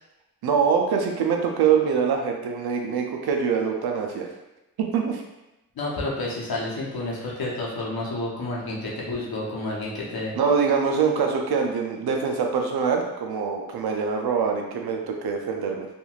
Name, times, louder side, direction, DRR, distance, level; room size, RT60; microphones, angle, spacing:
voice 1, 0.4-4.3 4.8-5.2 10.4-15.9, right 6 dB, 90° right, 2 dB, 0.5 m, -24 dB
voice 2, 5.8-10.3, left 2 dB, 75° left, -4 dB, 0.9 m, -30 dB
3.0 x 2.5 x 2.3 m, 0.95 s
cardioid pair, 45°, 37 cm